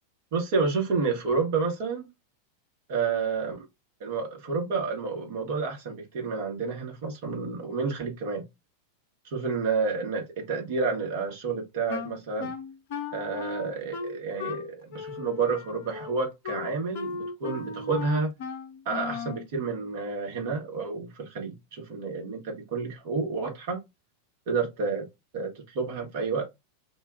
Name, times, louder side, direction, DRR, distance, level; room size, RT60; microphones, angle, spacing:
voice 1, 0.3-2.1 2.9-3.7 4.0-8.5 9.2-12.5 13.1-18.3 18.8-22.4 22.7-23.8 24.5-25.1 25.3-26.5, right 4 dB, 50° right, 1.1 m, -30 dB
Wind instrument woodwind instrument, 11.9-19.4, left 5 dB, 50° left, 0.6 m, -37 dB
2.4 x 2.2 x 3.7 m
figure-of-eight pair, 90°, 0 cm